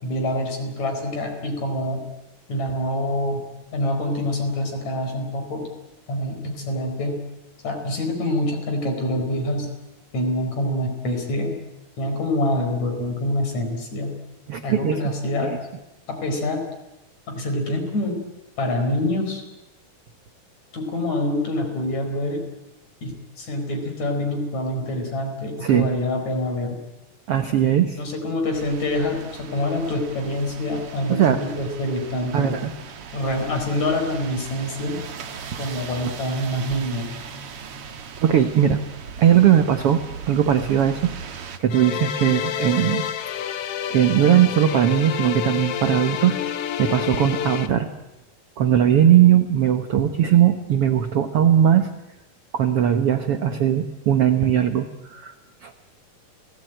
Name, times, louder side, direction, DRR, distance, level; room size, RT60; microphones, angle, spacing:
voice 1, 0.0-2.0 2.5-3.4 3.7-5.7 6.1-7.2 7.6-9.7 10.1-11.6 12.0-14.1 14.6-15.6 16.1-16.6 17.3-18.2 18.6-19.4 20.7-22.4 23.0-26.8 28.0-32.6 33.1-35.0 35.6-37.1, left 1 dB, 50° left, 4 dB, 5.7 m, -26 dB
voice 2, 14.5-15.0 15.4-15.6 25.6-25.9 27.3-28.0 31.1-31.4 32.3-32.7 38.2-38.8 39.2-41.1 41.6-43.0 43.9-46.4 46.8-47.9 48.6-51.9 52.5-55.3 55.6-55.7, right 10 dB, 75° right, 8 dB, 1.3 m, -19 dB
sound 1, 28.5-41.6, right 6 dB, 50° right, 2.0 m, -39 dB
sound 2, 41.7-47.7, left 9 dB, 80° left, 1.3 m, -28 dB
29.5 x 18.5 x 9.0 m, 0.96 s
omnidirectional pair, 4.3 m